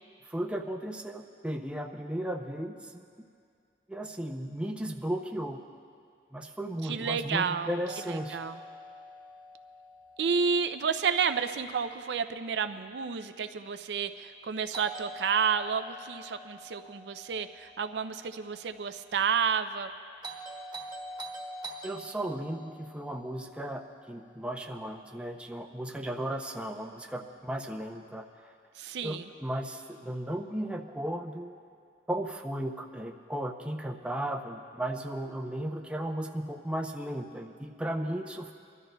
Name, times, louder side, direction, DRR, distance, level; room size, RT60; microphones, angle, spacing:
voice 1, 0.2-3.0 3.9-5.6 6.3-8.4 21.8-28.5 29.0-31.6 32.1-38.5, right 1 dB, 5° right, 3 dB, 0.5 m, -35 dB
voice 2, 6.9-7.7 8.1-8.6 10.2-19.9 28.8-29.2, right 6 dB, 75° right, 10 dB, 0.4 m, -30 dB
Doorbell, 7.9-11.9 14.7-18.9 20.2-24.6, right 1 dB, 25° right, 1.2 m, -46 dB
28.5 x 12.5 x 2.3 m, 2.3 s
head